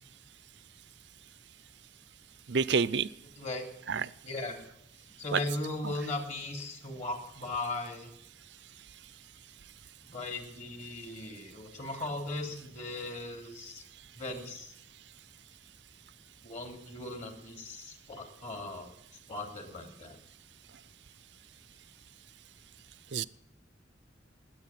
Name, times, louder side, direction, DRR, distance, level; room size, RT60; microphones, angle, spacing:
voice 1, 2.5-3.1 3.9-4.1 5.3-5.4 5.8-5.9 23.1-23.2, right 5 dB, 65° right, 18 dB, 0.6 m, -28 dB
voice 2, 4.2-4.6 5.2-8.1 10.1-13.8 14.2-14.7 16.4-18.9 19.3-20.2, left 2 dB, 40° left, 3 dB, 3.1 m, -38 dB
20.5 x 8.5 x 7.4 m, 0.83 s
head